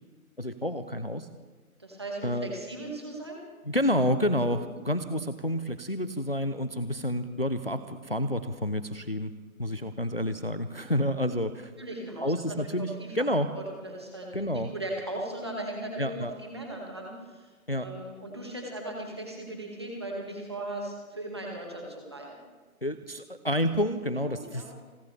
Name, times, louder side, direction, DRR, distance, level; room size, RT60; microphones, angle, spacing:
voice 1, 0.4-1.3 2.2-2.5 3.7-9.3 9.6-11.7 12.2-13.5 14.3-14.7 16.0-16.3 17.7-17.9 22.8-24.6, equal, 40° left, 11 dB, 0.6 m, -29 dB
voice 2, 1.8-3.4 4.6-4.8 9.6-9.8 11.8-13.3 13.6-22.4 24.0-24.8, right 1 dB, 20° right, -1 dB, 1.9 m, -38 dB
29.5 x 12.0 x 3.4 m, 1.3 s
figure-of-eight pair, 180°, 44 cm